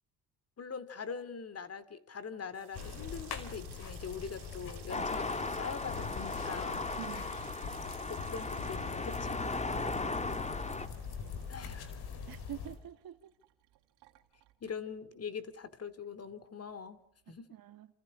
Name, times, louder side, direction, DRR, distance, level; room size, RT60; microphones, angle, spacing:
voice 1, 0.6-6.9 8.1-9.4 11.5-12.0 14.6-17.0 17.3-17.5, left 6 dB, 35° left, 2.5 m, -43 dB
Water tap faucet / Sink (filling or washing), 2.4-15.2 15.5-16.2 16.5-16.8, right 15 dB, 80° right, 3.0 m, -58 dB
sound 1, 2.8-12.8, left 6 dB, 70° left, 4.9 m, -43 dB
sound 2, 4.9-10.9, left 3 dB, 15° left, 1.7 m, -37 dB
voice 2, 9.7-10.2 12.3-13.3 17.3-17.9, right 12 dB, 60° right, 1.9 m, -47 dB
28.0 x 28.0 x 4.9 m
cardioid pair, 100°, 40 cm